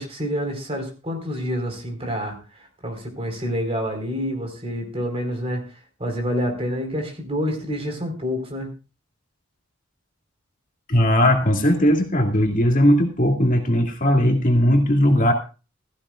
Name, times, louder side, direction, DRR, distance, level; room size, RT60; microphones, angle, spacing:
voice 1, 0.0-8.7, equal, 30° right, 3 dB, 4.4 m, -28 dB
voice 2, 10.9-15.3, equal, 40° left, 2 dB, 2.2 m, -18 dB
16.0 x 15.5 x 2.5 m, 0.32 s
head